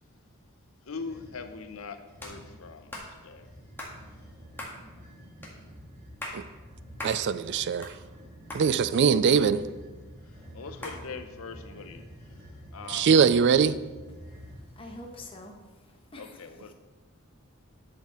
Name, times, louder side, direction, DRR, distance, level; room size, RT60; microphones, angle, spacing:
voice 1, 0.8-3.5 10.2-12.4 12.7-13.1 16.2-16.7, left 4 dB, 70° left, 0.8 m, -42 dB
sound 1, 1.0-1.5 2.1-2.7 3.3-15.3, equal, 35° right, 3.1 m, -48 dB
sound 2, 2.2-2.4 2.9-3.1 3.8-4.0 4.6-4.8 5.4-5.5 6.0-6.4 7.0-7.2 7.6-8.2 8.5-8.6 9.4-9.9 10.8-11.0, left 1 dB, 10° left, 1.8 m, -39 dB
voice 2, 7.0-8.0 8.5-9.6 12.9-13.8, right 6 dB, 55° right, 0.3 m, -22 dB
voice 3, 14.3-16.4, left 2 dB, 25° left, 1.2 m, -46 dB
10.5 x 6.6 x 4.3 m
head